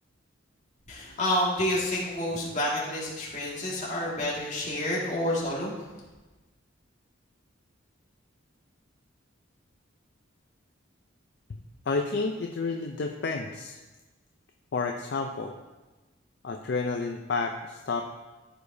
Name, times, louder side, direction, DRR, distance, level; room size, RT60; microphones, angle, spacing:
voice 1, 0.9-5.7, left 1 dB, 40° left, -5 dB, 2.0 m, -29 dB
voice 2, 11.9-13.8 14.7-15.6 16.4-18.0, left 4 dB, 60° left, 4 dB, 0.4 m, -30 dB
14.0 x 4.9 x 2.7 m, 1.2 s
head